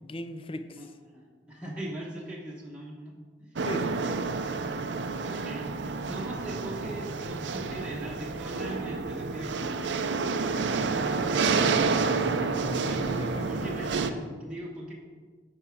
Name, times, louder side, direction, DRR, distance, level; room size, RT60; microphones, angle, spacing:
voice 1, 0.0-0.8 3.6-4.4 11.1-13.9, left 1 dB, 30° left, 9 dB, 0.5 m, -38 dB
voice 2, 0.8-3.7 4.0-4.4 5.3-9.8 12.7-14.9, right 1 dB, 5° right, -5 dB, 1.1 m, -41 dB
sound 1, 3.6-14.1, right 4 dB, 70° right, 0.5 m, -29 dB
9.0 x 4.7 x 6.3 m, 1.5 s
head